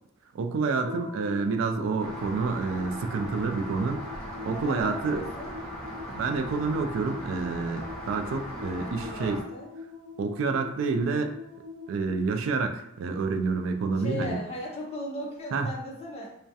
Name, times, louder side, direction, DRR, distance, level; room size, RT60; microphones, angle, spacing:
voice 1, 0.3-5.2 6.1-9.4 10.2-11.4 11.9-14.4 15.5-15.7, right 4 dB, 70° right, 6 dB, 0.3 m, -28 dB
sound 1, 0.8-13.4, left 4 dB, 50° right, 0.7 m, -44 dB
Rain, 2.0-9.4, equal, 5° left, 0.9 m, -39 dB
voice 2, 4.4-5.5 8.8-9.7 14.0-16.4, left 1 dB, 30° left, -2 dB, 0.4 m, -37 dB
2.3 x 2.1 x 2.6 m, 0.82 s
head